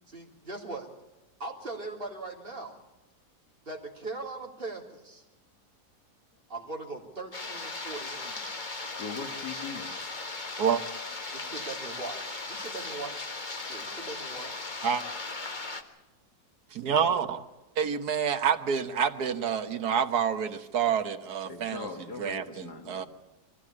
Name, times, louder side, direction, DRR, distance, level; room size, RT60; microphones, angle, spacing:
voice 1, 0.1-0.9 1.4-2.8 3.6-5.2 6.5-8.5 11.3-13.3 13.6-14.6, right 3 dB, 35° right, -1 dB, 3.4 m, -40 dB
sound 1, 7.3-15.8, left 3 dB, 30° left, 1.5 m, -37 dB
voice 2, 8.8-10.3 17.1-17.2 17.7-17.8 21.4-23.1, left 5 dB, 75° left, 4 dB, 2.3 m, -41 dB
voice 3, 16.7-17.4 17.8-21.8 22.2-22.4 22.9-23.1, right 7 dB, 70° right, 7 dB, 1.7 m, -27 dB
23.5 x 16.0 x 8.7 m, 1.0 s
omnidirectional pair, 1.7 m